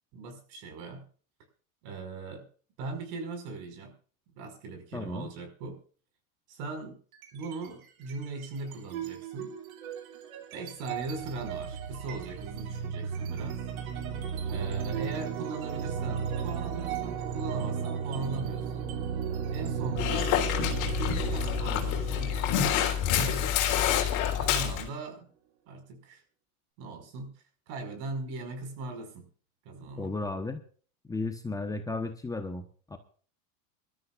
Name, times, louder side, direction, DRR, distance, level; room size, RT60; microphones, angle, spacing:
voice 1, 0.1-1.0 1.8-2.4 2.8-3.9 4.3-5.8 6.5-7.0 7.3-9.6 10.5-13.6 14.5-18.9 19.5-20.4 20.9-22.7 23.0-23.7 24.4-25.3 25.7-26.2 26.8-27.3 27.7-29.3 29.7-30.1, right 3 dB, 55° right, 6 dB, 5.5 m, -39 dB
voice 2, 4.9-5.3 30.0-30.6 31.1-33.0, left 3 dB, 10° left, 5 dB, 1.0 m, -34 dB
sound 1, 7.1-7.7 8.0-24.6, right 7 dB, 90° right, 2.9 m, -35 dB
Dog, 20.0-24.9, left 10 dB, 45° left, 3.5 m, -27 dB
25.0 x 13.0 x 2.5 m, 0.43 s
supercardioid pair, 140°, 41 cm